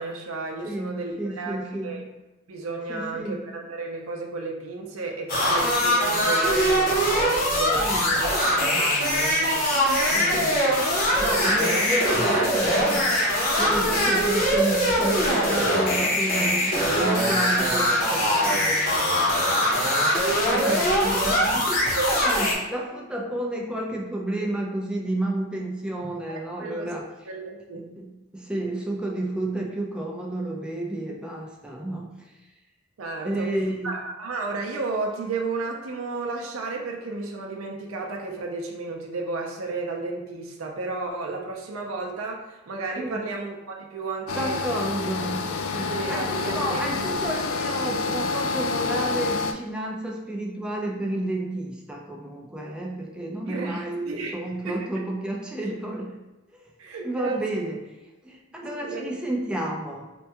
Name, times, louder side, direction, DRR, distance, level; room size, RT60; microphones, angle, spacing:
voice 1, 0.0-2.0 2.5-8.3 8.5-10.7 11.1-11.7 12.1-12.8 13.6-14.0 20.5-21.0 22.0-22.2 26.3-26.9 27.3-27.9 33.0-33.5 33.8-44.6 45.0-45.1 45.9-47.0 53.5-54.3 54.6-54.9 56.8-57.4 58.8-59.1, right 3 dB, 90° right, 1 dB, 0.5 m, -33 dB
voice 2, 0.6-2.0 2.9-3.4 7.7-8.0 10.1-10.5 11.2-13.1 13.6-27.1 27.8-32.3 33.2-33.9 43.0-43.2 44.4-45.5 45.7-56.2 56.5-56.7 57.0-57.8 58.2-60.1, right 1 dB, 5° right, -2 dB, 0.4 m, -31 dB
sound 1, 5.3-22.5, equal, 45° left, 0.8 m, -22 dB
sound 2, 44.3-49.5, left 4 dB, 85° left, 0.3 m, -28 dB
4.3 x 2.2 x 2.8 m, 1.1 s
head